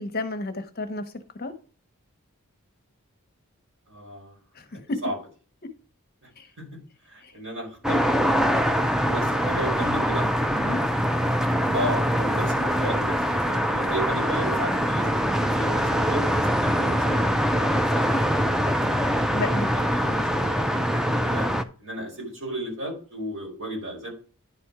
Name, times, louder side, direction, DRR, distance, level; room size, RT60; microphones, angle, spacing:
voice 1, 0.0-1.5 4.5-5.0 6.4-6.5 7.2-7.3 10.6-10.8 19.3-19.7, left 2 dB, 45° left, 0.9 m, -32 dB
voice 2, 3.9-4.4 5.0-5.2 6.2-6.3 6.6-6.7 7.0-8.0 9.0-10.3 11.7-17.2 19.4-21.5 21.8-24.1, right 1 dB, 70° right, 4.9 m, -34 dB
sound 1, 7.8-21.6, equal, ahead, 0.4 m, -23 dB
10.5 x 4.3 x 4.8 m
head